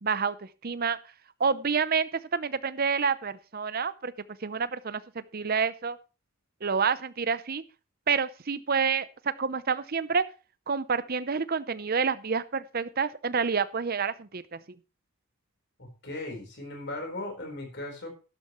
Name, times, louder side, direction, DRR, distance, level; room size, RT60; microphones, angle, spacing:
voice 1, 0.0-1.0 1.4-4.1 4.4-6.0 6.6-7.6 8.1-10.2 10.7-14.6, right 5 dB, 45° right, 15 dB, 0.7 m, -28 dB
voice 2, 15.8-18.1, left 2 dB, 50° left, 3 dB, 4.3 m, -37 dB
12.0 x 11.5 x 3.1 m, 0.33 s
head